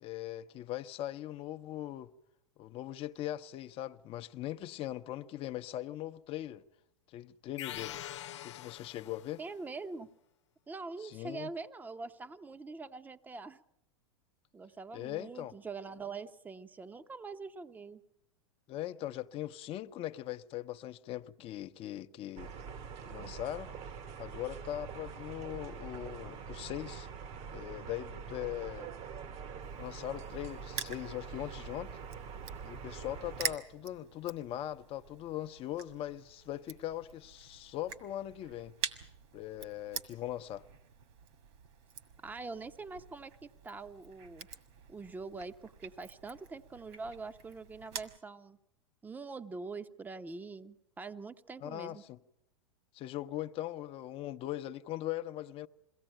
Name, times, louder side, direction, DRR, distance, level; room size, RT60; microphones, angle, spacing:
voice 1, 0.0-2.1 2.6-6.6 7.1-8.0 8.4-9.4 11.0-11.5 14.9-15.5 18.7-22.5 23.0-23.7 24.2-27.1 27.5-28.9 29.8-32.0 32.6-38.7 39.3-40.6 51.6-52.2 52.9-55.7, left 13 dB, 40° left, 0.8 m, -40 dB
sound 1, 7.6-9.5, left 12 dB, 75° left, 1.0 m, -44 dB
voice 2, 9.4-10.1 10.7-13.6 14.5-18.0 42.2-44.5 44.9-48.6 49.0-52.0, right 4 dB, 10° right, 0.8 m, -44 dB
sound 2, 22.4-33.6, right 6 dB, 45° right, 1.2 m, -45 dB
Crushing, 29.6-48.2, right 7 dB, 60° right, 2.0 m, -46 dB
22.5 x 16.5 x 9.0 m
hypercardioid pair, 105°, 15 cm